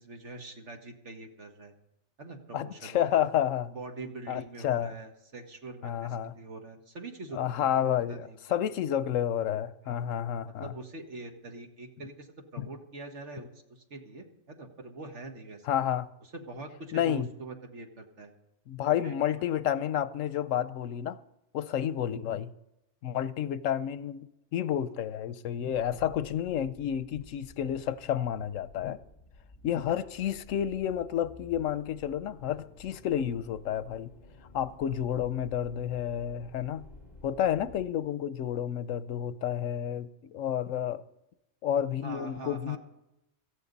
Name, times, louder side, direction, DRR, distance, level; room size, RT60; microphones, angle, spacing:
voice 1, 0.0-1.8 2.2-3.2 3.7-8.6 9.8-10.1 10.6-15.7 16.3-18.3 19.0-19.2 42.0-42.8, right 3 dB, 65° right, 2.0 m, -44 dB
voice 2, 2.5-3.7 4.3-4.9 5.8-6.3 7.3-10.7 12.6-12.7 15.6-16.1 16.9-17.3 18.7-21.2 21.5-22.5 23.0-29.0 29.6-34.1 34.5-36.8 37.2-41.0 41.6-42.8, left 10 dB, 85° left, 1.0 m, -30 dB
sound 1, 25.7-37.9, left 2 dB, 35° left, 2.0 m, -53 dB
17.5 x 14.0 x 4.0 m
omnidirectional pair, 1.3 m